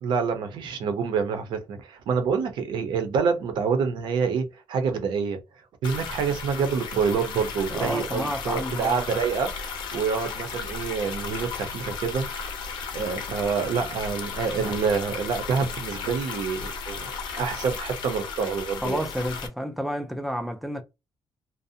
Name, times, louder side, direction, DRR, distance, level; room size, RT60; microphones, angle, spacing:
voice 1, 0.0-5.4 5.8-12.3 12.9-19.0, right 5 dB, 65° right, 0.6 m, -27 dB
sound 1, 5.8-19.5, left 5 dB, 65° left, 0.6 m, -35 dB
voice 2, 7.7-9.1 18.8-20.8, equal, ahead, 0.3 m, -30 dB
2.6 x 2.0 x 2.6 m
cardioid pair, 180°, 8 cm